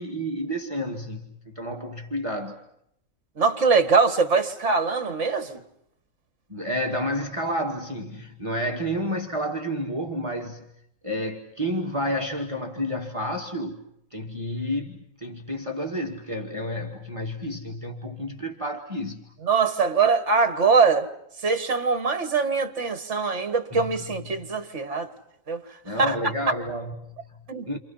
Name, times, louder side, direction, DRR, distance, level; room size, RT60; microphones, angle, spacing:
voice 1, 0.0-2.6 6.5-10.6 11.0-13.8 14.1-19.2 23.7-23.9 25.8-27.4 27.7-27.8, equal, 20° right, 2.1 m, -30 dB
voice 2, 3.4-5.6 19.4-21.1 21.4-25.1 25.5-26.2 27.5-27.8, right 4 dB, 55° right, 2.3 m, -23 dB
29.5 x 27.5 x 5.8 m
omnidirectional pair, 1.5 m